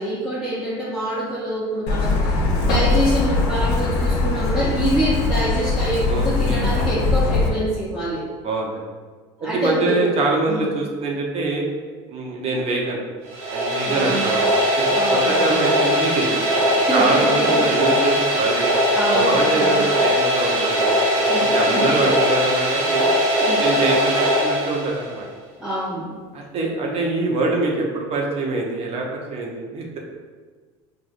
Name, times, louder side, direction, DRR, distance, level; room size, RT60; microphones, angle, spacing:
voice 1, 0.0-8.2 9.4-10.1 10.5-10.7 13.8-14.3 14.9-15.7 16.8-17.7 18.9-19.8 21.2-21.9 23.4-23.7 25.6-26.2, right 1 dB, 5° right, -10 dB, 0.8 m, -26 dB
Truck, 1.9-7.5, left 3 dB, 75° left, 0.7 m, -21 dB
voice 2, 6.1-6.7 8.4-8.8 9.4-11.6 12.1-13.0 13.5-14.4 14.8-16.6 16.9-18.7 19.1-23.1 23.6-25.2 26.3-30.0, right 3 dB, 45° right, -1 dB, 0.8 m, -24 dB
sound 1, 13.3-25.2, equal, 75° right, 1.2 m, -20 dB
4.9 x 2.5 x 2.5 m, 1.5 s
supercardioid pair, 105°, 15 cm